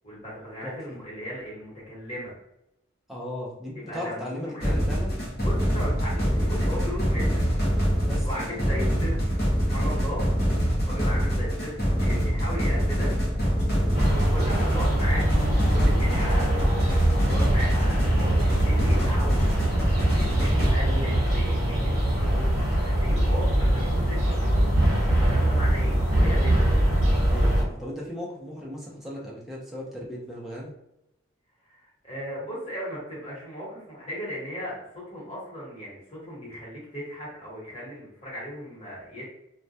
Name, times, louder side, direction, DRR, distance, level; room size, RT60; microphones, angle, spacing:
voice 1, 0.0-2.3 3.9-4.7 5.4-7.4 8.2-9.3 9.6-10.2 10.8-13.1 13.5-15.3 15.7-19.5 20.0-22.4 22.8-24.6 25.2-26.6 31.7-39.2, equal, 30° left, -7 dB, 1.0 m, -37 dB
voice 2, 3.1-5.2 8.0-8.9 10.8-11.0 20.8-21.4 23.8-24.0 27.2-30.7, equal, ahead, -5 dB, 0.4 m, -37 dB
sound 1, 4.6-20.7, equal, 50° left, 0.6 m, -25 dB
sound 2, 13.9-27.6, right 1 dB, 50° right, 0.9 m, -23 dB
2.2 x 2.1 x 2.6 m, 0.84 s
head